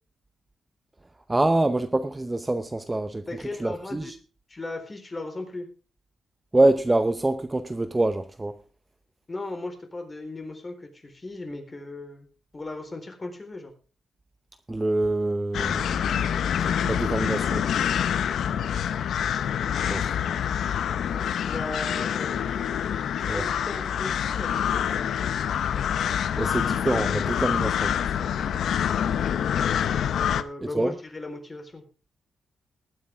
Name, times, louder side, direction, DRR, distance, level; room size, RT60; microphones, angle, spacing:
voice 1, 1.3-3.3 3.6-4.2 6.5-8.6 14.7-17.7 19.9-20.1 21.2-21.3 23.3-23.5 26.4-28.2 30.7-30.9, right 2 dB, 15° right, 0.7 m, -26 dB
voice 2, 3.3-4.1 4.5-5.7 9.3-13.7 21.4-22.4 23.3-25.0 30.2-31.8, left 2 dB, 25° left, 4.0 m, -37 dB
sound 1, 15.5-30.4, left 9 dB, 80° left, 0.8 m, -26 dB
20.0 x 9.3 x 3.6 m
cardioid pair, 115°, 0 cm